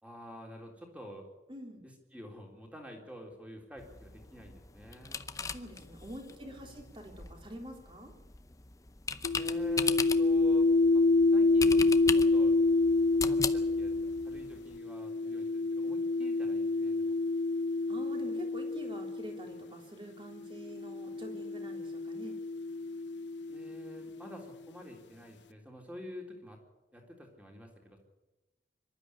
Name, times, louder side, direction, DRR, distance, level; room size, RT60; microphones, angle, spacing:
voice 1, 0.0-1.3 1.8-5.3 6.4-6.9 9.3-10.7 10.9-11.9 12.1-12.6 13.2-14.0 14.2-17.2 23.5-26.6 26.9-28.0, equal, 5° right, 1 dB, 3.7 m, -49 dB
voice 2, 1.5-1.8 5.5-8.1 17.9-22.4, equal, 30° right, 2 dB, 3.4 m, -46 dB
sound 1, 3.8-14.8, left 5 dB, 20° left, 0.7 m, -39 dB
sound 2, 9.2-19.6 20.5-24.2, left 3 dB, 80° left, 0.7 m, -28 dB
24.5 x 12.5 x 9.8 m, 1.0 s
head